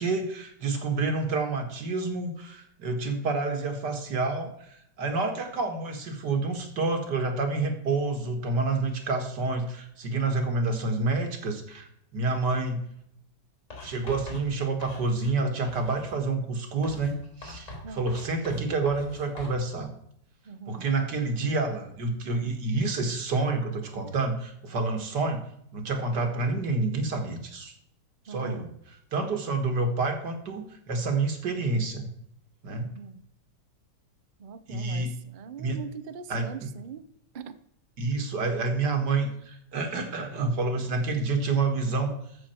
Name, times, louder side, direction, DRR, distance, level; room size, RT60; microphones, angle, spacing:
voice 1, 0.0-12.8 13.8-17.1 17.4-19.9 20.7-25.5 25.7-27.7 28.3-28.7 29.1-32.1 32.6-32.9 34.7-35.1 35.6-35.8 36.3-36.7 38.0-42.1, right 3 dB, 70° right, 5 dB, 2.2 m, -28 dB
Writing, 13.7-15.4 15.6-16.2 16.8-19.6, left 1 dB, 45° left, 4.0 m, -43 dB
voice 2, 20.5-20.9 28.3-28.8 32.8-33.2 34.4-37.0 37.3-37.6, right 6 dB, 50° right, 12 dB, 0.5 m, -42 dB
14.0 x 6.3 x 4.4 m, 0.73 s
omnidirectional pair, 1.9 m